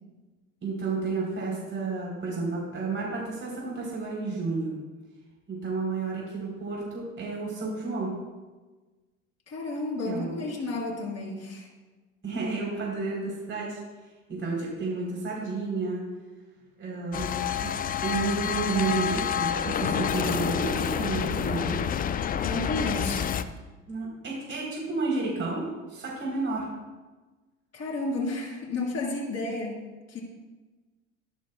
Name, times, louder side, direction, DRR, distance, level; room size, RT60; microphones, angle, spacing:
voice 1, 0.6-4.7 5.5-8.1 10.0-10.4 12.2-13.8 14.3-16.0 16.8-17.7 18.0-22.0 23.9-25.6 25.9-26.7, right 3 dB, 30° right, -3 dB, 3.5 m, -31 dB
voice 2, 9.5-11.7 22.4-23.3 27.7-29.8 30.1-30.2, left 2 dB, 40° left, -2 dB, 3.8 m, -32 dB
sound 1, 17.1-23.4, left 8 dB, 25° left, 0.4 m, -28 dB
14.0 x 11.0 x 2.2 m, 1.2 s
hypercardioid pair, 70°, 39 cm